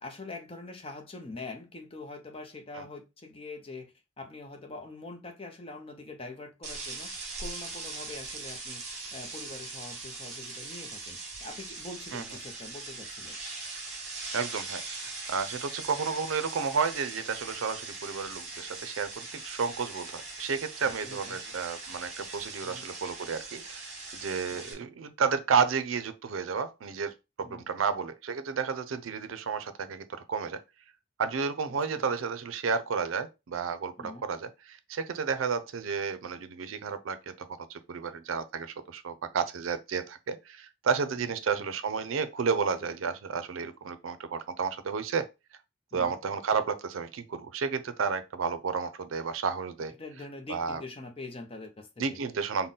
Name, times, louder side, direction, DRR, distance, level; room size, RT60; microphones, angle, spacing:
voice 1, 0.0-7.1 7.4-8.8 9.1-13.4 21.0-21.4 22.6-22.9 24.5-24.7 27.4-27.6 31.7-32.1 34.0-34.3 41.2-41.3 45.9-46.2 50.0-52.2, left 3 dB, 30° left, 0.6 m, -44 dB
sound 1, 6.6-24.7, right 3 dB, 35° right, 1.0 m, -41 dB
voice 2, 14.3-23.9 24.2-30.6 31.2-45.3 45.9-49.9 50.5-50.8 52.0-52.7, right 5 dB, 90° right, 0.5 m, -32 dB
3.9 x 2.1 x 3.6 m
head